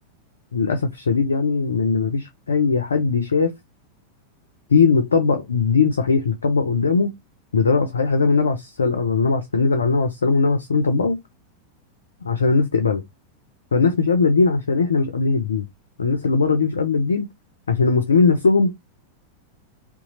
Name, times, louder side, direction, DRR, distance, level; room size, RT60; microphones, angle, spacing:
voice 1, 0.5-3.5 4.7-7.1 7.5-11.2 12.2-13.0 13.7-15.7 16.0-17.3 17.7-18.8, left 4 dB, 70° left, 0.4 m, -19 dB
2.8 x 2.3 x 4.0 m
figure-of-eight pair, 90°, 0 cm